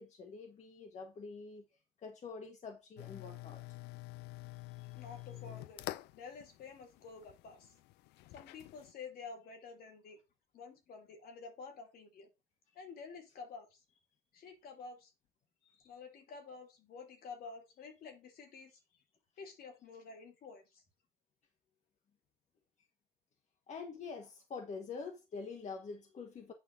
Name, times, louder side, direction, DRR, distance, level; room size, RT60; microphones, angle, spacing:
voice 1, 0.0-1.7 2.0-3.6 4.7-5.0 23.7-26.5, left 4 dB, 45° left, 1.3 m, -46 dB
sound 1, 3.0-8.9, left 18 dB, 80° left, 0.4 m, -48 dB
voice 2, 4.9-7.7 8.3-10.2 10.5-12.3 12.7-13.8 14.3-15.1 15.6-18.8 19.4-20.8, left 5 dB, 65° left, 2.3 m, -50 dB
8.8 x 5.5 x 3.6 m
cardioid pair, 110°, 17 cm